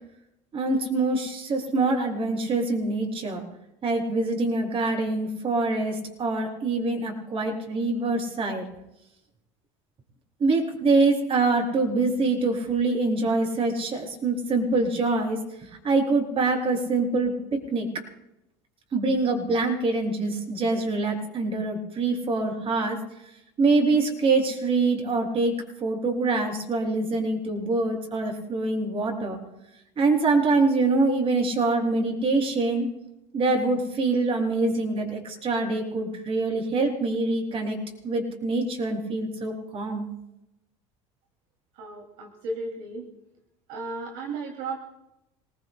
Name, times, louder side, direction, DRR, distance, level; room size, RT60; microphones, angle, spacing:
voice 1, 0.5-3.4 3.8-8.7 10.4-17.9 18.9-23.0 23.6-29.4 30.0-32.9 33.3-37.8 38.0-40.1, right 3 dB, 40° right, 1 dB, 6.8 m, -25 dB
voice 2, 41.7-43.1 43.7-44.8, right 3 dB, 70° right, 0 dB, 2.7 m, -34 dB
27.5 x 21.0 x 2.3 m, 0.90 s
hypercardioid pair, 85°, 14 cm